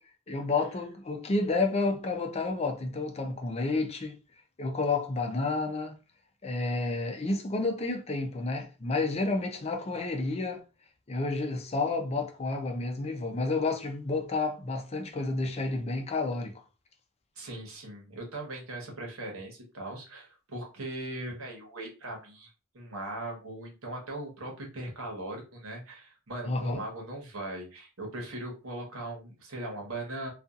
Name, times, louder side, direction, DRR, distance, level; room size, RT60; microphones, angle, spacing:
voice 1, 0.3-4.2 4.6-6.0 6.4-10.6 11.1-16.5 26.5-26.8, left 3 dB, 30° left, 0.5 m, -30 dB
voice 2, 17.4-30.3, right 1 dB, 90° right, 1.1 m, -39 dB
2.6 x 2.4 x 2.4 m
head